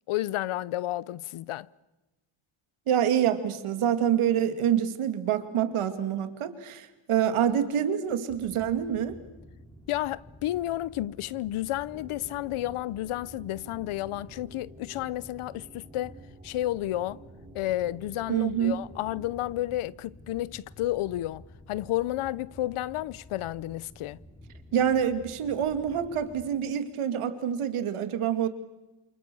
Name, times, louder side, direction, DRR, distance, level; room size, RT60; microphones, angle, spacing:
voice 1, 0.1-1.7 9.9-16.2 16.4-17.2 17.5-24.2, left 15 dB, 85° left, 0.9 m, -31 dB
voice 2, 2.9-9.2 18.3-18.8 24.7-28.5, right 9 dB, 80° right, 2.6 m, -26 dB
sound 1, 8.3-26.5, left 1 dB, 10° left, 3.0 m, -51 dB
sound 2, 11.9-19.7, right 2 dB, 15° right, 3.3 m, -52 dB
28.5 x 28.0 x 7.0 m
cardioid pair, 145°, 49 cm